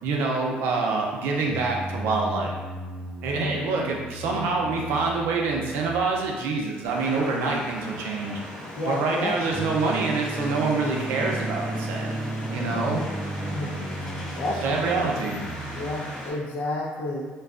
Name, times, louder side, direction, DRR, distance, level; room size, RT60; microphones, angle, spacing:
voice 1, 0.0-2.5 3.2-8.4 8.8-12.1 12.5-13.0 14.6-15.4, right 3 dB, 85° right, -1 dB, 0.5 m, -26 dB
sound 1, 1.4-16.0, right 1 dB, 5° left, 0.5 m, -36 dB
voice 2, 3.3-3.8 4.3-4.5 8.7-9.3 12.6-13.0 13.4-13.8 14.4-15.0 15.7-17.3, left 2 dB, 65° left, -2 dB, 0.6 m, -31 dB
sound 2, 6.9-16.3, equal, 25° left, 1.1 m, -36 dB
2.6 x 2.2 x 2.4 m, 1.4 s
cardioid pair, 100°, 3 cm